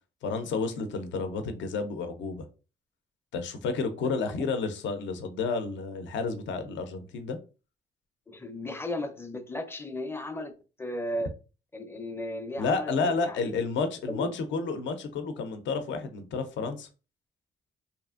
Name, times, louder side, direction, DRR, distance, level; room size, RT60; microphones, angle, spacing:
voice 1, 0.2-2.4 3.3-7.4 12.6-16.9, left 4 dB, 70° left, 0.5 m, -31 dB
voice 2, 8.3-10.5 10.8-11.4 11.7-13.5 14.0-14.3, left 1 dB, 10° left, 0.5 m, -35 dB
2.8 x 2.4 x 2.4 m
cardioid pair, 90°, 20 cm